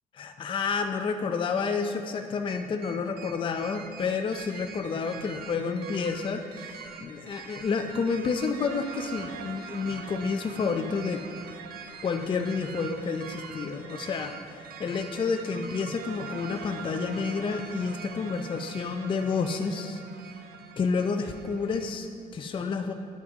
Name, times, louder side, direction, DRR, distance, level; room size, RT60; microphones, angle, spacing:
voice 1, 0.1-11.2 12.0-14.4 14.8-20.0 20.8-22.9, left 5 dB, 30° left, 6 dB, 0.5 m, -30 dB
sound 1, 2.5-21.9, right 6 dB, 65° right, 0.8 m, -43 dB
9.5 x 6.0 x 4.7 m, 2.6 s
cardioid pair, 110°, 17 cm